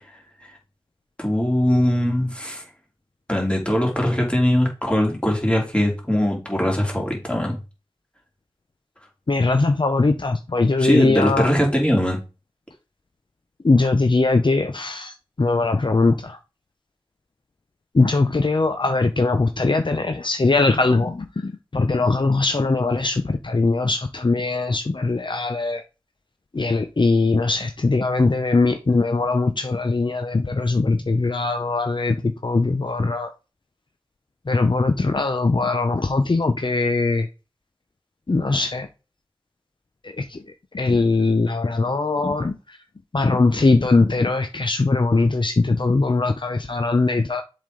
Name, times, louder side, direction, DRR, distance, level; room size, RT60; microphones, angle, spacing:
voice 1, 1.2-2.6 3.3-7.6 10.8-12.2, equal, 10° left, 2.8 m, -21 dB
voice 2, 9.3-11.5 13.6-15.1 15.4-16.4 17.9-25.8 26.5-32.2 32.4-33.3 34.5-37.3 38.3-38.9 40.2-40.4 40.7-42.6 43.1-47.4, left 3 dB, 55° left, 0.7 m, -20 dB
7.3 x 5.1 x 3.9 m
wide cardioid pair, 60°, 10 cm